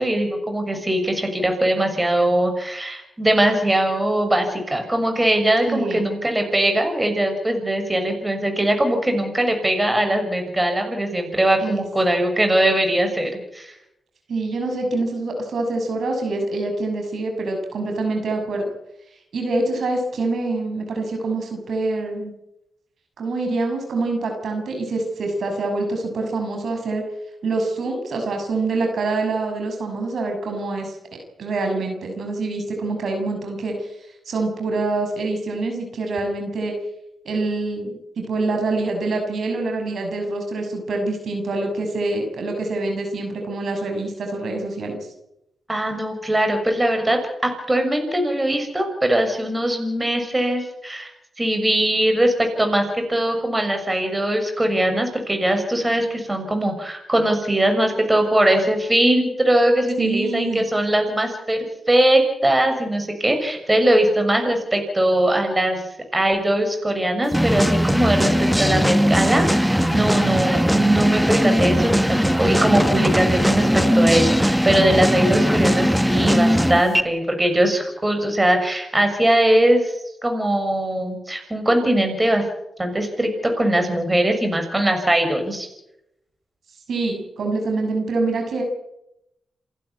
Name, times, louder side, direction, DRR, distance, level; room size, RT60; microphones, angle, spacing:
voice 1, 0.0-13.7 45.7-51.1 51.4-65.8 66.1-82.4 82.8-85.7, right 1 dB, 20° right, 5 dB, 6.5 m, -21 dB
voice 2, 5.7-6.1 11.6-11.8 14.3-18.6 19.3-22.3 23.2-27.0 27.4-31.0 31.4-33.9 34.2-36.7 37.2-45.0 60.0-60.6 86.9-88.6, right 2 dB, 70° right, 3 dB, 6.3 m, -25 dB
sound 1, 67.3-77.0, equal, ahead, 1.3 m, -19 dB
28.5 x 12.0 x 9.8 m, 0.85 s
cardioid pair, 65°, 0 cm